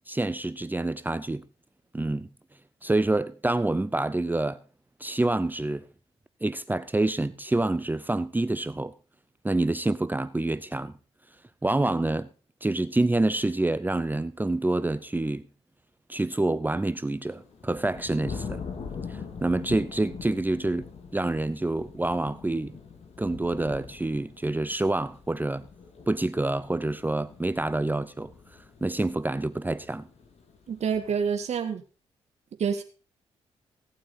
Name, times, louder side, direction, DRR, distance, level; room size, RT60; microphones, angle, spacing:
voice 1, 0.1-1.4 1.9-2.3 2.8-4.6 5.0-5.8 6.4-8.9 9.4-10.9 11.6-12.3 12.6-15.4 16.1-18.6 19.1-20.9 21.1-22.8 23.2-25.7 26.1-28.3 28.8-30.1, right 2 dB, 15° right, 0.7 m, -27 dB
sound 1, 17.1-31.4, left 5 dB, 55° left, 2.8 m, -43 dB
voice 2, 30.7-31.8 32.6-32.8, right 6 dB, 60° right, 1.8 m, -27 dB
17.0 x 8.6 x 4.2 m
supercardioid pair, 50°, 13 cm